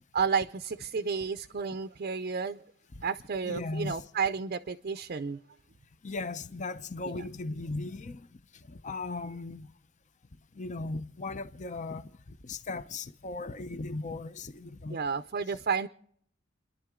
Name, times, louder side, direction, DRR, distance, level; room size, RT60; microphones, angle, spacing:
voice 1, 0.1-2.6 3.0-5.4 14.9-15.9, right 5 dB, 45° right, 0.5 m, -31 dB
voice 2, 3.4-4.0 6.0-8.3 8.7-9.7 10.5-12.1 12.4-15.0, left 3 dB, 40° left, 0.7 m, -37 dB
30.0 x 11.0 x 3.7 m
head